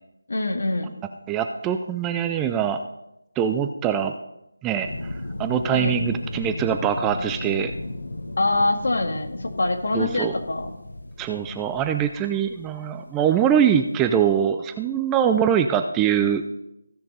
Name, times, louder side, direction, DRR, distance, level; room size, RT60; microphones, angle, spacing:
voice 1, 0.3-0.9 5.7-6.0 8.4-10.7, left 2 dB, 65° left, 4 dB, 1.9 m, -24 dB
voice 2, 1.3-2.8 3.4-4.1 4.6-5.1 5.4-7.7 9.9-10.3 11.2-16.4, right 8 dB, 10° right, 8 dB, 0.3 m, -23 dB
sound 1, 4.8-13.0 14.4-14.5, left 1 dB, 85° left, 1.3 m, -35 dB
15.5 x 6.6 x 4.0 m, 0.86 s
figure-of-eight pair, 170°, 0 cm